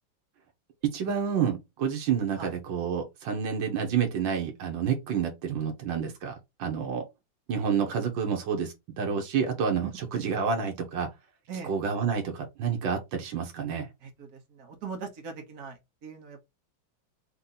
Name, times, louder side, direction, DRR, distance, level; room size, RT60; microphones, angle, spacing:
voice 1, 0.8-7.1 7.5-11.1 11.6-13.9, right 7 dB, 85° right, 1.7 m, -29 dB
voice 2, 14.0-16.4, right 5 dB, 55° right, 1.6 m, -41 dB
3.8 x 2.9 x 3.8 m
omnidirectional pair, 2.0 m